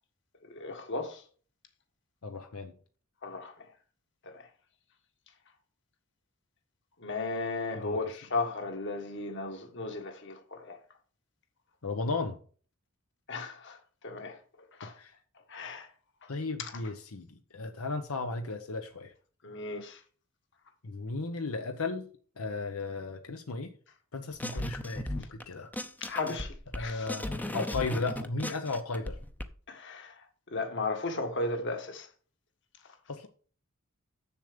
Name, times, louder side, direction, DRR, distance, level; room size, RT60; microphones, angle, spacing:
voice 1, 0.5-1.2 3.2-3.5 4.3-4.4 7.0-10.8 13.3-13.8 14.0-14.4 14.8-14.9 15.5-15.9 16.6-16.7 19.4-20.0 26.0-27.1 29.7-30.1 30.5-32.1, left 3 dB, 55° left, 1.5 m, -35 dB
voice 2, 2.2-2.7 7.7-8.0 11.8-12.4 14.9-15.1 16.3-19.1 20.8-22.1 22.4-23.7 24.1-25.7 26.7-29.2 33.1-33.3, left 3 dB, 90° left, 0.9 m, -35 dB
sound 1, 24.4-25.4 25.7-29.4, left 1 dB, 10° left, 0.6 m, -36 dB
7.1 x 7.0 x 5.1 m
head